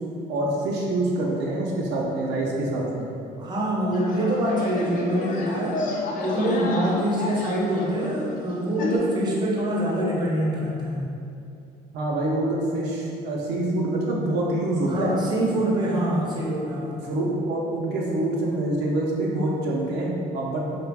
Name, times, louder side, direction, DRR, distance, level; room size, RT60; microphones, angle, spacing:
voice 1, 0.3-3.1 11.9-15.1 17.1-20.7, right 1 dB, 85° right, -3 dB, 0.5 m, -26 dB
voice 2, 3.4-5.8 6.2-11.1 14.9-17.0, right 1 dB, 25° right, -4 dB, 0.5 m, -25 dB
sound 1, 3.9-9.0, left 2 dB, 55° left, 0.4 m, -31 dB
2.3 x 2.1 x 3.3 m, 2.6 s
cardioid pair, 110°, 17 cm